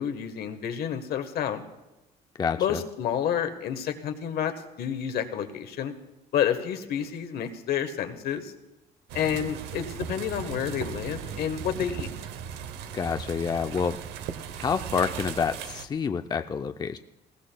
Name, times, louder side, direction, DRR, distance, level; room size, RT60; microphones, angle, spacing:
voice 1, 0.0-1.6 2.6-5.9 6.3-8.5 9.1-12.1, left 9 dB, 65° left, 7 dB, 1.2 m, -29 dB
voice 2, 2.4-2.8 12.9-14.0 14.5-17.0, left 6 dB, 25° left, 8 dB, 0.4 m, -28 dB
sound 1, 9.1-15.9, right 8 dB, 85° right, 0.8 m, -37 dB
20.0 x 16.0 x 2.2 m, 1.0 s
cardioid pair, 110°, 17 cm